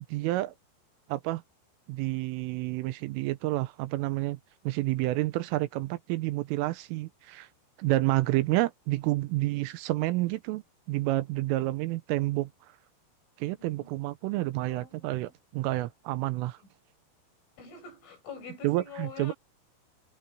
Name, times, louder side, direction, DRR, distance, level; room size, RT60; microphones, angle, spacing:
voice 1, 0.1-0.5 1.1-1.4 1.9-4.4 4.6-7.5 7.8-12.5 13.4-16.6 18.6-19.3, right 18 dB, 85° right, 3.5 m, -29 dB
voice 2, 13.6-13.9 14.6-15.3 17.6-19.3, left 5 dB, 75° left, 9.5 m, -45 dB
omnidirectional pair, 5.7 m